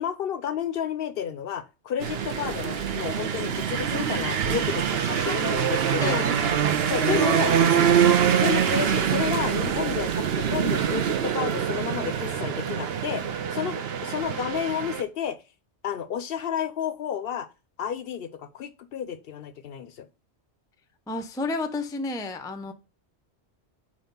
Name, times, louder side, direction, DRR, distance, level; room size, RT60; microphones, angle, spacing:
voice 1, 0.0-6.2 6.9-7.5 8.4-15.4 15.8-17.5 17.8-20.1, left 9 dB, 65° left, 0.7 m, -31 dB
sound 1, 2.0-15.0, right 8 dB, 65° right, 0.9 m, -24 dB
voice 2, 5.2-7.4 21.1-22.7, left 3 dB, 5° left, 0.3 m, -33 dB
4.8 x 4.1 x 5.3 m
omnidirectional pair, 1.1 m